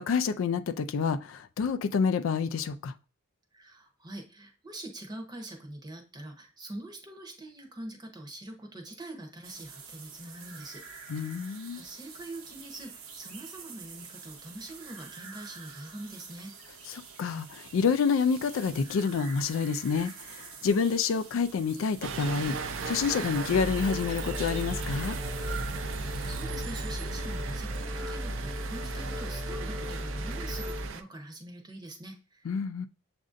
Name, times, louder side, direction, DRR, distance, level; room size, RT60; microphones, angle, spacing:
voice 1, 0.0-2.9 11.1-11.8 16.9-25.2 32.5-32.9, left 5 dB, 65° left, 0.3 m, -28 dB
voice 2, 3.5-11.2 11.7-16.5 25.7-32.5, right 1 dB, 20° right, 0.8 m, -44 dB
sound 1, 9.4-26.4, right 5 dB, 80° right, 0.9 m, -47 dB
sound 2, 22.0-31.0, right 5 dB, 60° right, 0.4 m, -38 dB
sound 3, 23.5-30.9, equal, ahead, 0.4 m, -36 dB
7.3 x 2.6 x 2.5 m
head